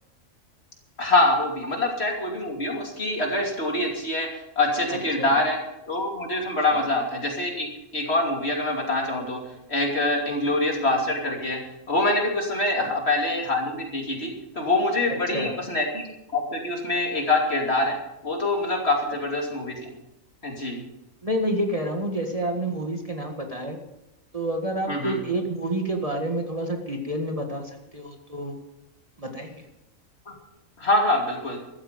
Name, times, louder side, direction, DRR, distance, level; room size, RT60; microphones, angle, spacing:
voice 1, 1.0-4.3 4.6-5.6 5.9-7.7 7.9-9.4 9.7-11.6 11.9-16.0 16.3-18.0 18.2-19.9 20.4-20.8 24.9-25.2 30.3-30.4 30.8-31.6, left 2 dB, 50° left, 1 dB, 3.1 m, -25 dB
voice 2, 4.9-5.3 6.7-6.8 12.8-12.9 15.3-15.6 21.2-23.8 24.3-28.5 29.2-29.6, right 1 dB, 25° right, 2 dB, 1.8 m, -29 dB
15.0 x 13.5 x 5.2 m, 0.89 s
omnidirectional pair, 1.4 m